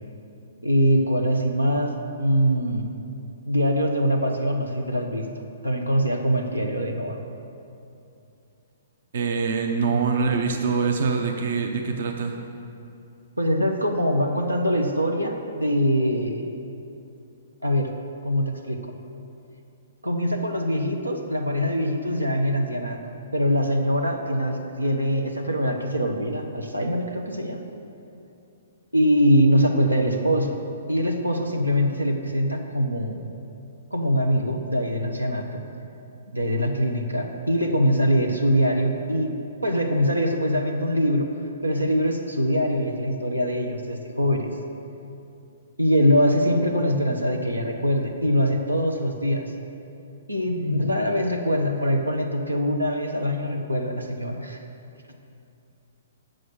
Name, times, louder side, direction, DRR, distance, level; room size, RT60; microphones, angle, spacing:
voice 1, 0.6-2.9 3.4-5.3 5.6-7.2 9.9-10.1 13.4-16.4 17.6-17.9 18.2-18.8 20.0-23.0 23.3-27.6 28.9-30.6 30.9-33.2 33.9-35.6 36.3-39.3 39.6-41.3 41.6-44.5 45.8-49.5 50.3-54.6, equal, 85° right, 3 dB, 0.9 m, -23 dB
voice 2, 9.1-12.4, right 5 dB, 55° right, 3 dB, 0.8 m, -24 dB
7.5 x 6.5 x 7.9 m, 2.7 s
figure-of-eight pair, 120°, 0 cm